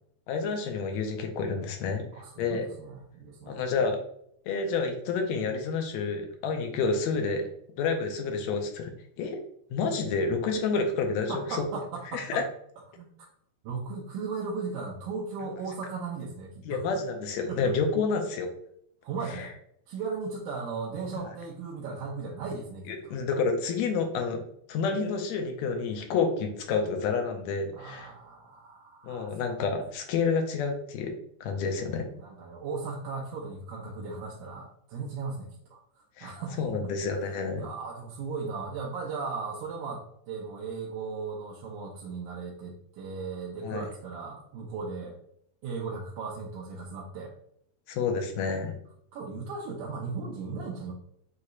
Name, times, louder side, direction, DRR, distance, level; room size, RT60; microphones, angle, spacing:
voice 1, 0.3-2.1 2.4-2.7 3.5-4.0 4.5-7.5 7.8-8.9 9.2-9.4 9.7-11.6 12.1-12.4 16.7-18.5 19.3-19.5 22.9-24.4 24.7-28.1 29.0-31.1 31.4-32.1 36.2-37.7 43.6-43.8 47.9-48.7, left 4 dB, 80° left, 4 dB, 1.8 m, -29 dB
voice 2, 2.1-3.8 11.3-12.4 12.9-13.1 13.6-16.8 17.5-17.8 19.0-19.5 19.9-23.1 27.7-29.4 32.2-35.8 36.2-36.9 37.6-45.2 45.6-47.3 49.1-50.9, right 4 dB, 85° right, -4 dB, 2.1 m, -37 dB
6.3 x 2.9 x 2.4 m, 0.70 s
omnidirectional pair, 3.4 m